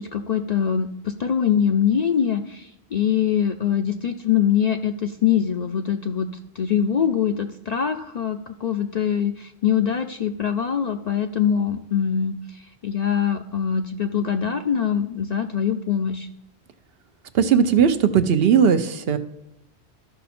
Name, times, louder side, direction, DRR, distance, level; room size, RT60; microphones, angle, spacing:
voice 1, 0.0-6.3 6.6-16.3, left 8 dB, 55° left, 6 dB, 0.5 m, -23 dB
voice 2, 17.3-19.2, right 7 dB, 65° right, 10 dB, 0.9 m, -18 dB
13.0 x 5.8 x 4.2 m, 0.82 s
omnidirectional pair, 1.1 m